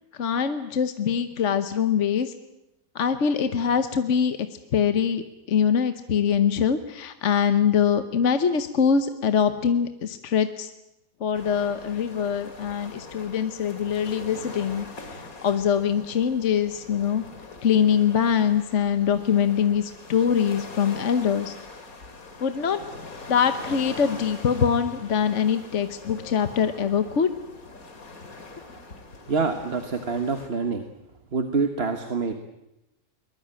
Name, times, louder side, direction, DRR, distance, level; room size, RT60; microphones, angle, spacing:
voice 1, 0.2-2.3 2.9-4.4 4.7-10.7 11.2-14.9 15.1-17.2 17.6-21.5 22.4-22.8 23.3-27.3, left 7 dB, 60° left, 9 dB, 1.3 m, -23 dB
sound 1, 11.3-30.5, left 3 dB, 80° left, 2.8 m, -43 dB
voice 2, 29.3-30.8 31.3-32.3, right 4 dB, 45° right, 7 dB, 1.5 m, -26 dB
22.5 x 20.5 x 8.9 m, 0.89 s
omnidirectional pair, 1.5 m